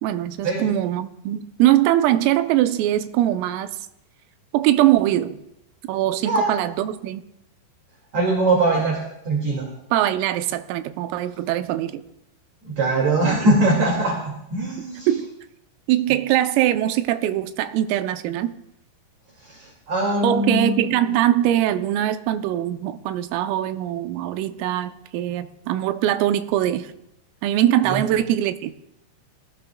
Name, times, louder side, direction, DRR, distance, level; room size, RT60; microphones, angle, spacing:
voice 1, 0.0-3.8 4.5-5.4 5.9-7.2 9.9-12.0 13.2-13.3 14.8-15.3 15.9-18.5 20.2-26.9 27.4-28.7, right 13 dB, 90° right, 10 dB, 3.4 m, -22 dB
voice 2, 8.1-9.0 9.2-9.7 12.6-15.1 19.4-20.8 27.9-28.0, right 2 dB, 45° right, -1 dB, 2.7 m, -21 dB
26.5 x 17.5 x 2.3 m, 0.81 s
omnidirectional pair, 5.8 m